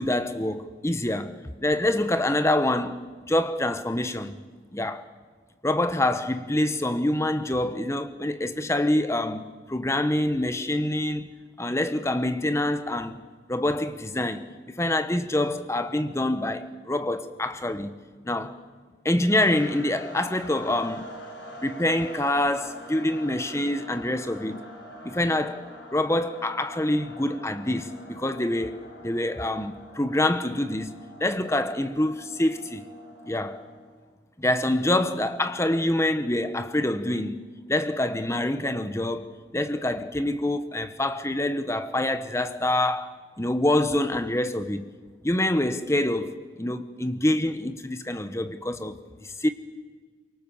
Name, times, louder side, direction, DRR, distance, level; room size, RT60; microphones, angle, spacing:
voice 1, 0.0-4.4 4.7-5.1 5.6-11.3 11.6-13.2 13.5-18.0 18.2-18.6 19.0-21.1 21.6-24.7 25.0-32.8 33.3-33.7 34.4-37.4 37.7-44.9 45.2-49.5, left 1 dB, 15° left, 1.1 m, -26 dB
sound 1, 19.3-34.1, equal, 65° left, 4.9 m, -44 dB
24.5 x 23.5 x 7.3 m
head